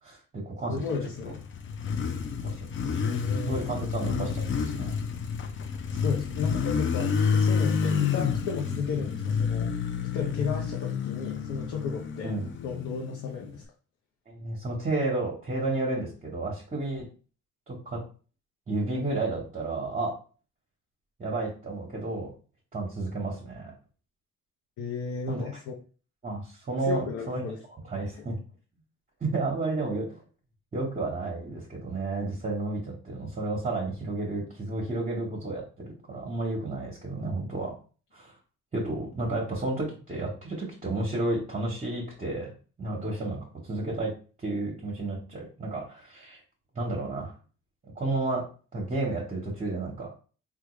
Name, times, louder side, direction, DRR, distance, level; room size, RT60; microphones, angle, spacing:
voice 1, 0.0-0.8 2.4-3.1 3.5-4.9 12.2-12.5 14.3-17.1 17.7-18.0 18.7-20.1 21.2-22.3 22.7-23.7 25.3-25.4 26.2-27.4 27.9-28.4 29.2-30.2 30.7-37.7 38.1-38.3 38.7-42.5 42.8-44.1 44.4-46.4 46.7-47.3 47.9-48.4 48.7-50.1, right 2 dB, 25° right, -4 dB, 1.0 m, -32 dB
voice 2, 0.7-1.4 3.0-3.6 5.8-9.8 10.0-12.3 12.6-13.6 24.8-25.7 26.8-27.6, left 5 dB, 75° left, -1 dB, 0.7 m, -34 dB
Motorcycle, 0.9-13.6, left 6 dB, 40° left, 0.5 m, -29 dB
3.5 x 2.3 x 3.0 m, 0.38 s
cardioid pair, 90°, 30 cm